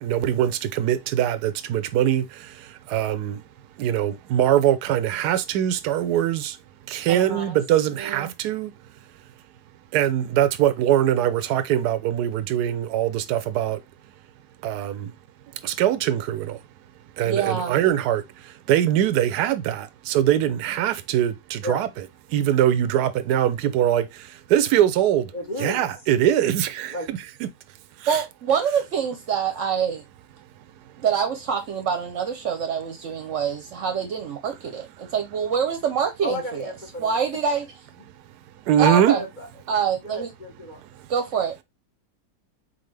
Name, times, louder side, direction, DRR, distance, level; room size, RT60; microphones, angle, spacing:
voice 1, 0.0-3.4 3.8-6.6 6.9-8.7 9.9-13.8 14.6-15.1 15.6-16.6 17.2-21.9 22.3-25.3 25.6-27.5 28.0-28.2 38.7-39.2 40.9-41.0, right 11 dB, 80° right, 1.1 m, -22 dB
voice 2, 7.1-7.6 8.0-8.3 17.2-17.7 28.1-30.0 31.0-36.7 37.0-37.6 38.8-39.2 39.7-40.3 41.1-41.6, right 7 dB, 55° right, 1.0 m, -25 dB
voice 3, 25.3-25.8 26.9-27.1 36.2-37.2 38.9-39.5 40.0-40.8, left 1 dB, 30° left, 1.3 m, -32 dB
4.1 x 3.9 x 3.2 m
omnidirectional pair, 1.7 m